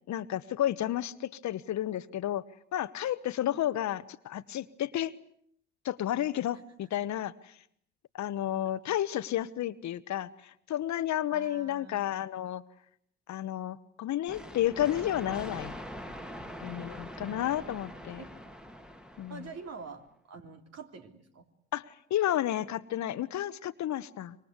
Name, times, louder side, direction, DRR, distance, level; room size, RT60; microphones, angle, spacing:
voice 1, 0.1-2.4 2.7-5.1 5.8-7.6 8.1-12.6 13.3-15.7 16.6-18.2 19.2-19.5 21.7-24.4, left 12 dB, 60° left, 14 dB, 1.2 m, -32 dB
voice 2, 11.3-12.0 16.4-16.8 17.2-17.6 18.2-18.3 19.3-21.5, right 5 dB, 50° right, 5 dB, 3.5 m, -47 dB
sound 1, 14.3-19.9, equal, ahead, 2.1 m, -43 dB
26.5 x 23.5 x 8.3 m, 0.68 s
hypercardioid pair, 55°, 33 cm